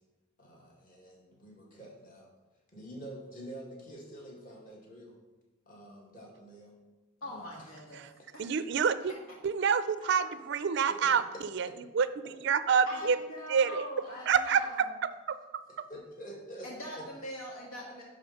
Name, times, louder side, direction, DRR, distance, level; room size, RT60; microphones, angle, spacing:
voice 1, 0.4-2.3 2.7-5.2 5.7-6.7 7.2-7.7 10.0-10.4 10.9-11.1 13.7-13.8 14.0-14.2 14.4-14.7 15.9-16.7 16.9-17.0, equal, 40° left, -3 dB, 2.2 m, -47 dB
voice 2, 7.2-8.0 8.3-8.4 12.9-15.0 16.6-18.0, equal, 85° left, -2 dB, 1.8 m, -43 dB
voice 3, 8.4-9.1 9.4-11.2 11.5-11.7 12.0-12.1 12.4-13.2 13.5-13.8 14.3-14.6, right 6 dB, 55° right, 13 dB, 0.4 m, -26 dB
10.5 x 3.9 x 5.7 m, 1.1 s
head